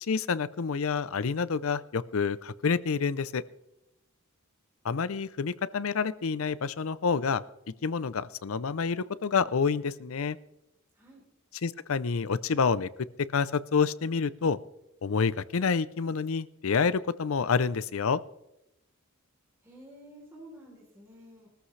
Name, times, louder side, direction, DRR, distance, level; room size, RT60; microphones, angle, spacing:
voice 1, 0.0-3.4 4.8-7.4 7.8-10.4 11.6-12.9 13.3-14.6 15.0-18.2, left 5 dB, 75° left, 17 dB, 0.6 m, -28 dB
voice 2, 10.9-11.2 19.6-21.5, right 1 dB, 15° right, -5 dB, 3.5 m, -51 dB
20.0 x 14.0 x 3.3 m, 0.88 s
head